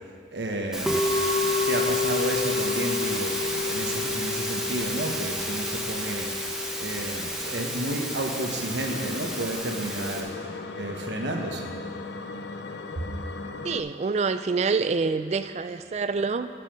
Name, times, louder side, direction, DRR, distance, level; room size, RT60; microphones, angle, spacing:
voice 1, 0.3-1.2 1.4-10.3 10.8-11.7, right 1 dB, 85° right, 2 dB, 1.2 m, -32 dB
Musical instrument, 0.7-10.2, left 2 dB, 5° right, 1.0 m, -28 dB
sound 1, 8.4-13.8, left 3 dB, 80° left, 0.5 m, -37 dB
voice 2, 13.6-16.5, right 4 dB, 40° right, 11 dB, 0.3 m, -26 dB
9.7 x 7.3 x 6.3 m, 2.1 s
head